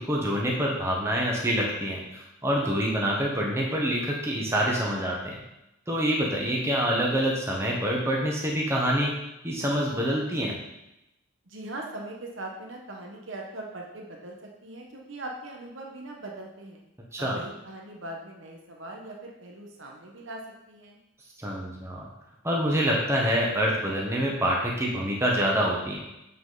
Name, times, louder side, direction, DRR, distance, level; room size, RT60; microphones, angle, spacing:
voice 1, 0.1-5.4 5.9-9.1 9.4-10.5 17.1-17.4 21.4-22.1 22.4-26.0, equal, 10° right, -2 dB, 1.0 m, -26 dB
voice 2, 11.5-16.8 17.2-20.4 20.7-21.0, right 2 dB, 60° right, 0 dB, 1.1 m, -40 dB
7.4 x 5.8 x 3.9 m, 0.89 s
head